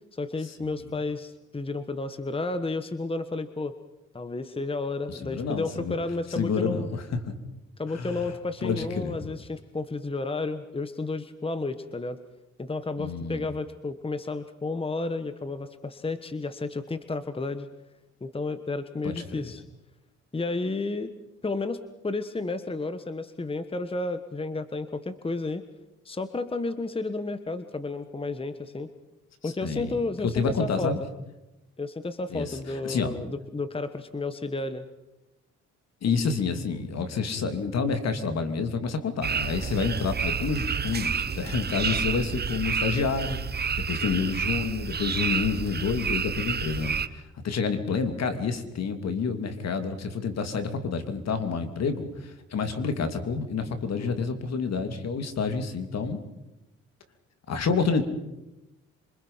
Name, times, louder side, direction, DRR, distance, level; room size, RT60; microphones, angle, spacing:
voice 1, 0.1-3.7 4.1-6.9 7.8-12.2 12.6-17.7 18.2-19.6 20.3-21.1 21.4-25.6 26.0-28.9 29.4-30.9 31.8-34.9 44.0-44.3 54.0-54.3, left 3 dB, 20° left, 10 dB, 1.4 m, -32 dB
voice 2, 5.1-5.9 6.3-7.2 7.9-8.2 8.6-9.4 13.0-13.4 19.0-19.5 29.4-30.0 30.2-31.0 32.3-32.6 32.8-33.1 36.0-43.4 43.9-56.2 57.5-58.0, left 5 dB, 60° left, 8 dB, 3.1 m, -29 dB
sound 1, 39.2-47.1, right 6 dB, 35° right, 1.1 m, -29 dB
27.5 x 24.5 x 5.8 m, 0.97 s
cardioid pair, 90°, 30 cm